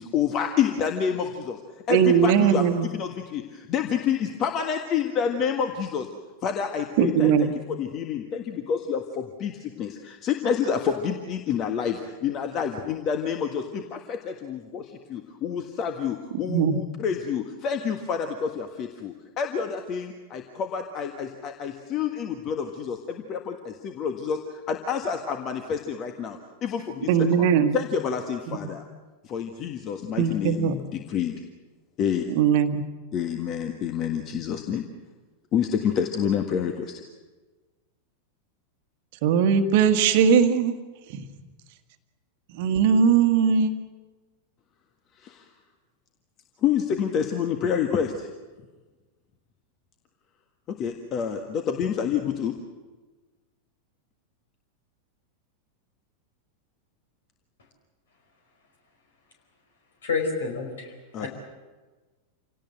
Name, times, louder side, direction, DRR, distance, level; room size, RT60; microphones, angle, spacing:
voice 1, 0.0-1.6 1.9-6.1 6.4-27.5 27.7-28.8 29.2-31.3 32.0-32.2 33.1-34.8 35.5-37.0 45.1-45.5 46.6-48.3 50.7-52.5 61.1-61.3, left 7 dB, 35° left, 5 dB, 1.6 m, -28 dB
voice 2, 1.9-2.9 7.0-7.5 16.5-16.8 27.1-27.8 28.5-28.6 30.2-30.8 32.3-32.8 39.2-40.7 41.1-41.3 42.5-43.7, right 7 dB, 50° right, 8 dB, 1.5 m, -20 dB
voice 3, 60.0-60.9 61.2-61.3, left 4 dB, 65° left, 3 dB, 5.1 m, -28 dB
27.5 x 18.0 x 7.7 m, 1.3 s
figure-of-eight pair, 90°, 0 cm